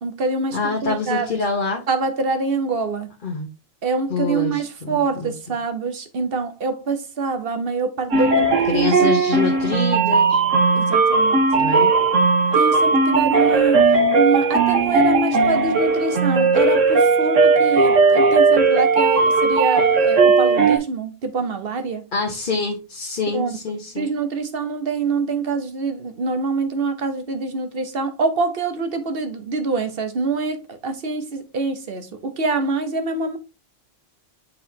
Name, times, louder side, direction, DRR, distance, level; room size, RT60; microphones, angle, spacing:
voice 1, 0.0-1.4 1.9-3.1 3.8-9.1 10.7-11.4 12.5-13.9 14.1-22.0 23.3-23.6 24.0-33.4, right 4 dB, 50° right, 1.1 m, -25 dB
voice 2, 0.5-1.9 3.2-3.5 4.1-5.3 8.7-10.4 11.6-11.9 22.1-24.1, left 4 dB, 45° left, 1.1 m, -25 dB
sound 1, 8.1-20.8, right 4 dB, 85° right, 1.7 m, -17 dB
6.7 x 5.5 x 2.8 m
omnidirectional pair, 1.3 m